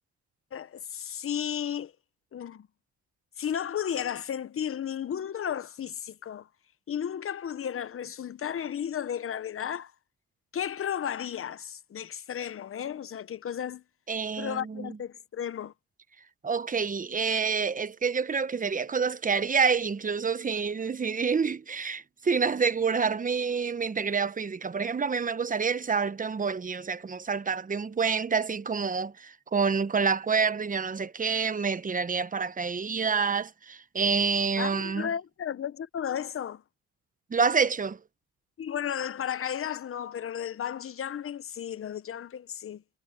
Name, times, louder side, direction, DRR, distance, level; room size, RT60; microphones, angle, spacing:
voice 1, 0.5-1.9 2.3-2.7 3.4-6.5 6.9-9.9 10.5-13.8 14.4-15.7 34.6-36.6 38.6-42.8, left 9 dB, 45° left, 1.0 m, -34 dB
voice 2, 14.1-15.0 16.4-35.1 37.3-38.0, right 5 dB, 25° right, 1.0 m, -28 dB
cardioid pair, 90°, 30 cm